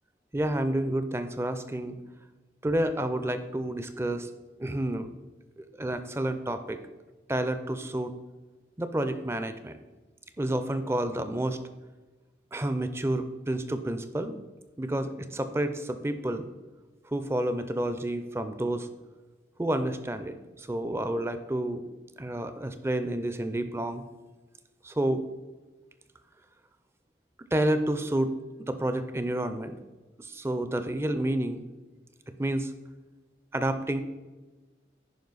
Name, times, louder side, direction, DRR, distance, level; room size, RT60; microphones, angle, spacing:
voice 1, 0.3-2.0 2.6-4.3 4.6-5.1 5.6-6.8 7.3-8.1 8.8-9.8 10.4-11.6 12.5-14.4 14.8-16.5 17.1-18.9 19.6-21.8 22.2-24.0 24.8-25.2 27.5-28.3 28.6-29.7 30.2-31.6 32.3-32.7 33.5-34.0, right 1 dB, 15° right, 10 dB, 0.4 m, -29 dB
10.5 x 5.0 x 4.0 m, 1.2 s
head